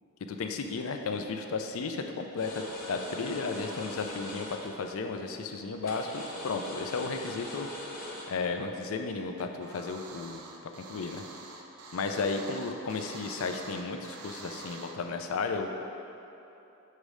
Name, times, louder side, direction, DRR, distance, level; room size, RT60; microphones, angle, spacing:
voice 1, 0.2-7.7 8.3-10.4 10.9-11.2 11.9-15.7, left 4 dB, 70° left, 5 dB, 0.4 m, -34 dB
sound 1, 2.4-4.7 5.8-8.2, left 1 dB, 40° left, 1.2 m, -41 dB
sound 2, 9.4-14.9, right 3 dB, 85° right, 0.5 m, -46 dB
6.5 x 3.1 x 4.9 m, 2.9 s
head